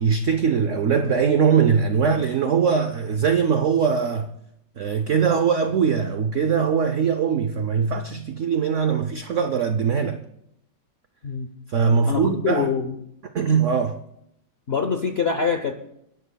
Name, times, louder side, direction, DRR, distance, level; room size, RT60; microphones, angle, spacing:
voice 1, 0.0-4.3 4.8-10.2 11.7-12.7 13.3-14.0, right 6 dB, 75° right, 0.6 m, -21 dB
voice 2, 12.1-13.0 14.7-15.7, left 6 dB, 55° left, 0.7 m, -24 dB
29.0 x 11.5 x 2.3 m
omnidirectional pair, 2.1 m